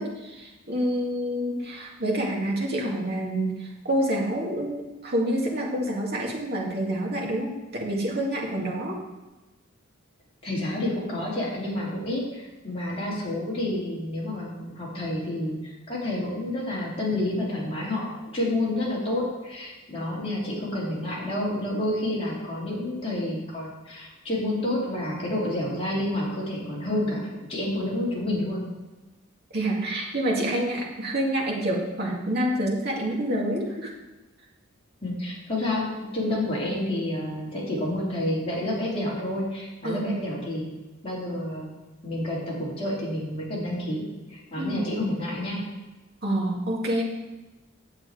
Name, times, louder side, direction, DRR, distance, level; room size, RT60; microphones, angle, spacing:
voice 1, 0.0-9.0 29.5-33.9 39.8-40.1 44.6-44.9 46.2-47.0, right 1 dB, 50° right, -2 dB, 2.2 m, -27 dB
voice 2, 10.4-15.6 15.9-28.6 35.0-35.9 36.1-40.7 41.0-41.7 42.0-44.0 44.3-45.6, left 1 dB, 30° left, -6 dB, 3.2 m, -29 dB
9.6 x 7.4 x 4.8 m, 1.1 s
head